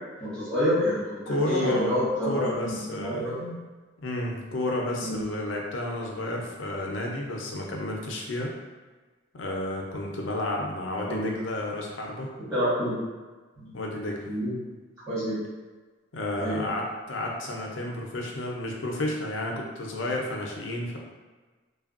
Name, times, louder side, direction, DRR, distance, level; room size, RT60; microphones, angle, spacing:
voice 1, 0.2-3.5 5.0-5.2 11.1-11.3 12.5-13.0 13.6-13.8 14.3-14.6 15.1-15.4 16.4-16.6, equal, 20° right, -15 dB, 1.3 m, -28 dB
voice 2, 1.3-3.3 4.0-8.5 9.3-12.3 13.7-14.2 16.1-21.0, left 1 dB, 70° left, -1 dB, 0.6 m, -31 dB
3.3 x 2.2 x 2.4 m, 1.3 s
head